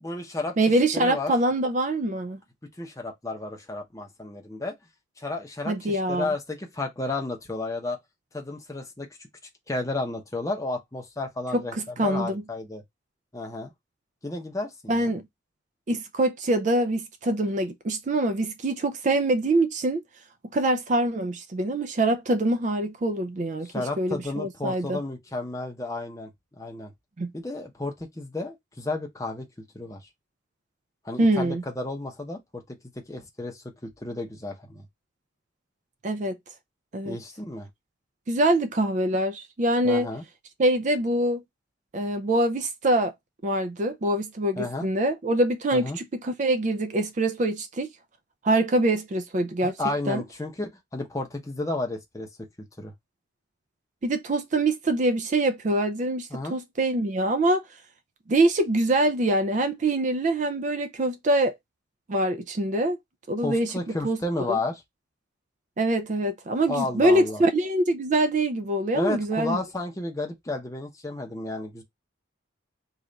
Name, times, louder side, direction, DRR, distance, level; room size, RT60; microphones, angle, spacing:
voice 1, 0.0-1.3 2.6-4.7 5.2-8.0 8.3-9.3 9.7-12.8 13.3-13.7 14.2-15.1 23.6-26.9 27.3-29.5 29.7-30.0 31.0-32.8 33.1-34.8 37.0-37.7 39.8-40.2 44.6-44.9 45.7-46.0 49.6-52.3 52.8-52.9 56.3-56.6 63.4-64.8 66.7-67.4 68.9-71.8, left 2 dB, 15° left, 0.7 m, -32 dB
voice 2, 0.6-2.4 5.7-6.3 11.5-12.4 14.9-15.2 15.9-20.0 20.5-25.0 27.2-27.3 31.2-31.6 36.0-36.4 36.9-37.2 38.3-40.1 40.6-41.4 41.9-43.1 43.4-47.9 48.4-49.7 50.1-50.2 54.0-57.6 58.3-61.5 62.1-63.0 63.3-63.7 64.0-64.2 64.5-64.6 65.8-69.6, right 1 dB, 40° right, 0.4 m, -24 dB
3.2 x 2.4 x 3.8 m
head